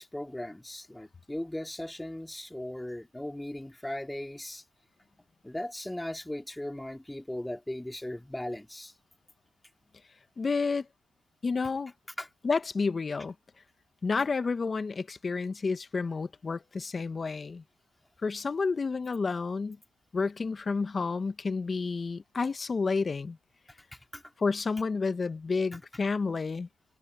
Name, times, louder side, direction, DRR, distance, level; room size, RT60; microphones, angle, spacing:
voice 1, 0.0-4.6 5.4-8.9 12.2-12.3 23.9-24.2, left 1 dB, 10° left, 3.5 m, -38 dB
voice 2, 10.4-10.9 11.4-11.9 12.4-13.3 14.0-17.6 18.2-19.8 20.1-23.4 24.4-26.7, left 4 dB, 35° left, 1.3 m, -30 dB
cardioid pair, 75°, 0 cm